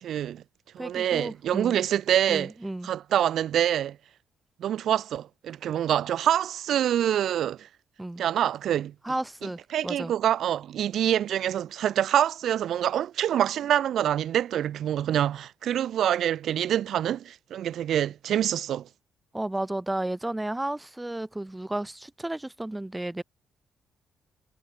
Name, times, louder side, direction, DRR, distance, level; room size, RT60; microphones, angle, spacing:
voice 1, 0.0-0.4 0.7-2.5 2.8-4.0 4.6-7.7 8.2-8.9 9.7-18.9, right 10 dB, 70° right, 1.1 m, -26 dB
voice 2, 0.8-1.8 2.3-2.9 8.0-8.2 9.0-10.1 19.3-23.2, right 1 dB, 10° right, 4.1 m, -33 dB
cardioid pair, 90°, 0 cm